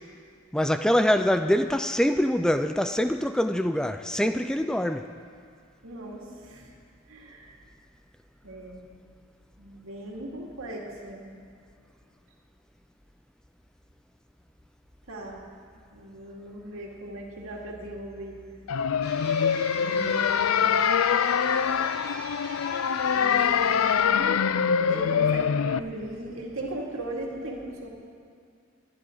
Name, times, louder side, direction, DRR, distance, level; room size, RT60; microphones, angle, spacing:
voice 1, 0.5-5.1, equal, 5° left, 8 dB, 0.3 m, -24 dB
voice 2, 5.8-6.7 7.1-7.5 8.4-9.0 9.6-11.3 15.1-15.4 15.9-18.5 19.7-20.8 23.1-24.5 24.9-27.9, right 1 dB, 85° right, -1 dB, 2.4 m, -38 dB
sound 1, 18.7-25.8, left 7 dB, 85° left, 0.4 m, -24 dB
sound 2, 19.0-24.0, left 2 dB, 50° left, 1.7 m, -40 dB
22.5 x 11.0 x 3.9 m, 2.3 s
head